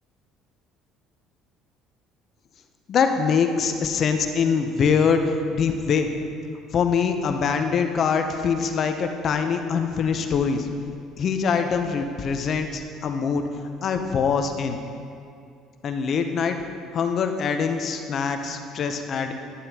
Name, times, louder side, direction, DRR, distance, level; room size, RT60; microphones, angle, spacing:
voice 1, 2.9-6.1 6.7-10.7 11.2-13.4 13.8-14.8 15.8-16.6 16.9-19.3, left 6 dB, 50° left, 6 dB, 0.6 m, -23 dB
11.0 x 9.7 x 2.9 m, 2.4 s
supercardioid pair, 95°, 0 cm